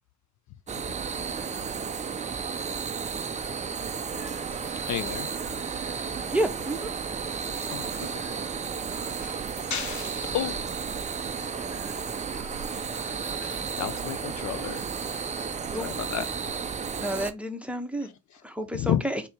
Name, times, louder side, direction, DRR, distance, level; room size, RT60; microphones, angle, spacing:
sound 1, 0.7-17.3, right 6 dB, 20° right, 0.4 m, -33 dB
sound 2, 3.3-15.5, left 1 dB, 20° left, 1.6 m, -51 dB
voice 1, 4.9-5.3 7.7-8.2 9.2-10.8 12.9-15.1 15.7-16.5 18.0-18.4 18.7-19.0, left 10 dB, 45° left, 0.5 m, -33 dB
voice 2, 6.3-6.9 15.7-15.9 17.0-18.1 18.4-19.2, right 1 dB, 5° right, 0.9 m, -30 dB
4.1 x 2.9 x 3.4 m
supercardioid pair, 70°, 40 cm